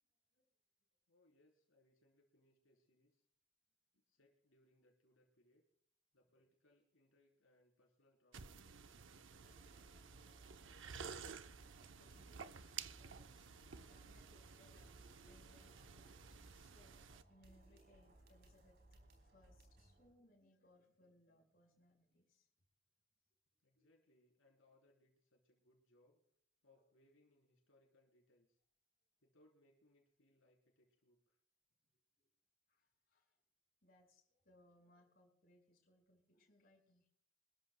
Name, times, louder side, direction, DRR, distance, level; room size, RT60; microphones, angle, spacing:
voice 1, 1.1-3.3 3.9-5.6 6.1-9.6 17.4-17.6 23.6-26.2 26.6-28.6 29.2-31.4, left 1 dB, 80° left, -1 dB, 3.8 m, -74 dB
sound 1, 8.3-17.2, right 6 dB, 70° right, 0.7 m, -53 dB
sound 2, 9.4-20.1, right 1 dB, 50° right, 4.3 m, -65 dB
voice 2, 11.9-17.0 17.3-18.8 19.2-22.5 23.7-23.9 32.1-32.3 32.7-33.4 33.8-37.1, left 1 dB, 45° left, 0 dB, 5.3 m, -71 dB
25.5 x 14.0 x 2.2 m, 0.69 s
head